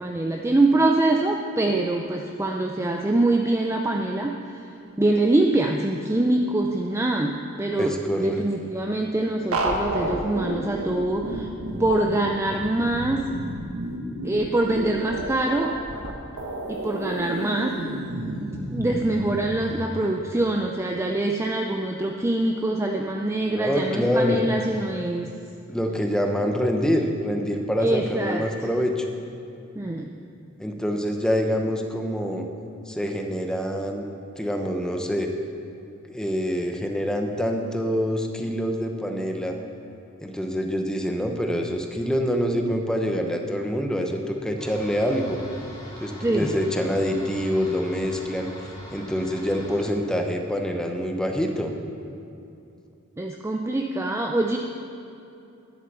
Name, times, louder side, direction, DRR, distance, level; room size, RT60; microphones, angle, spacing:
voice 1, 0.0-4.7 5.0-11.5 11.8-13.4 14.2-15.8 16.7-17.9 18.4-25.3 27.8-28.7 29.8-30.2 46.2-46.5 53.2-54.6, right 2 dB, 10° right, 2 dB, 0.4 m, -24 dB
voice 2, 7.8-8.4 23.5-24.4 25.7-29.1 30.6-32.5 32.9-34.1 34.4-35.3 36.1-39.6 40.2-45.4 46.0-48.5 48.9-51.7, equal, 5° left, 3 dB, 0.9 m, -26 dB
sound 1, 9.5-19.7, right 1 dB, 90° right, 1.4 m, -31 dB
sound 2, 44.6-49.9, equal, 20° left, 2.4 m, -41 dB
11.0 x 8.1 x 6.8 m, 2.7 s
head